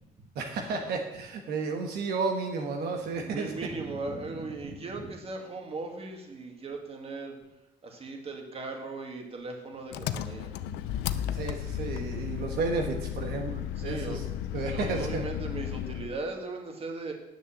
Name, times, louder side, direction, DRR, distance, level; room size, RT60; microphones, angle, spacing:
voice 1, 0.3-3.5 11.3-14.2 14.5-15.2, right 4 dB, 70° right, 2 dB, 1.5 m, -32 dB
voice 2, 3.1-7.4 7.8-10.8 13.7-17.1, right 3 dB, 35° right, 3 dB, 2.2 m, -38 dB
Engine, 9.9-16.2, left 11 dB, 90° left, 0.6 m, -34 dB
9.8 x 6.8 x 7.3 m, 0.93 s
cardioid pair, 110°, 17 cm